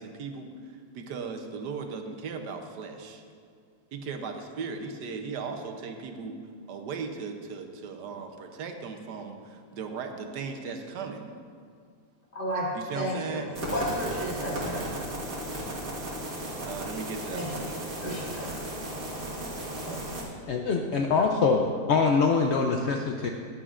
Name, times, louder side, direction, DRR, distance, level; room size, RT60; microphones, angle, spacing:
voice 1, 0.0-3.2 3.9-6.4 6.7-11.3 12.7-13.5 16.6-17.7, right 5 dB, 80° right, 5 dB, 1.4 m, -37 dB
voice 2, 12.3-12.7 12.9-13.4 13.7-14.8 17.3-17.6 18.0-18.5 19.8-20.0, equal, 30° left, -7 dB, 2.7 m, -32 dB
sound 1, 13.5-20.2, right 1 dB, 55° right, 2.0 m, -35 dB
voice 3, 20.5-23.3, left 4 dB, 75° left, 2 dB, 0.6 m, -24 dB
14.0 x 10.0 x 2.5 m, 2.1 s
omnidirectional pair, 1.8 m